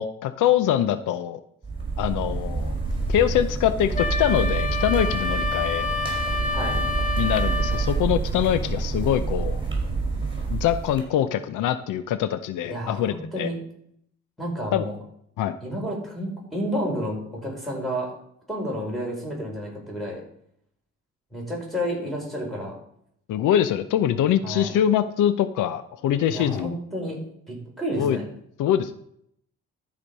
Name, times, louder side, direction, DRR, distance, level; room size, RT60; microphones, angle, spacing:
voice 1, 0.0-1.4 2.0-2.7 3.1-5.9 7.2-9.6 10.5-13.5 14.7-14.8 15.4-15.5 23.3-26.7 28.0-28.2 28.6-29.0, left 10 dB, 85° left, 12 dB, 0.7 m, -24 dB
sound 1, 1.6-11.0, right 4 dB, 15° right, 4.1 m, -27 dB
Wind instrument woodwind instrument, 4.0-7.9, left 4 dB, 25° left, 1.4 m, -28 dB
voice 2, 6.5-6.9 12.7-13.7 14.4-15.0 15.6-18.2 18.5-20.2 21.3-22.8 24.4-24.7 26.3-28.3, equal, ahead, -2 dB, 4.9 m, -31 dB
13.0 x 5.2 x 5.4 m, 0.71 s
cardioid pair, 90°, 30 cm